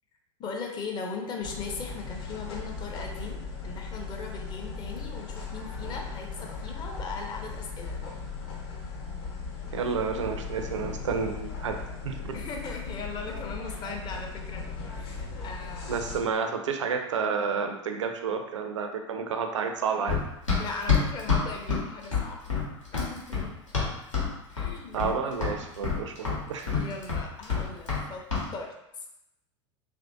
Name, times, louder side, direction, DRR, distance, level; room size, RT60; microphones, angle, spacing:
voice 1, 0.4-8.0 12.3-16.0 20.6-22.5 22.9-23.5 24.5-25.0 26.7-29.0, left 4 dB, 25° left, 2 dB, 0.5 m, -39 dB
sound 1, 1.4-16.2, left 4 dB, 50° left, 0.8 m, -38 dB
voice 2, 9.7-11.8 12.0-12.4 15.9-20.2 24.9-26.9, right 5 dB, 70° right, 5 dB, 0.4 m, -30 dB
Run, 20.1-24.3 24.6-25.2 25.4-28.0 28.3-28.5, left 5 dB, 85° left, 0.9 m, -27 dB
3.0 x 2.5 x 2.5 m, 0.85 s
figure-of-eight pair, 85°, 16 cm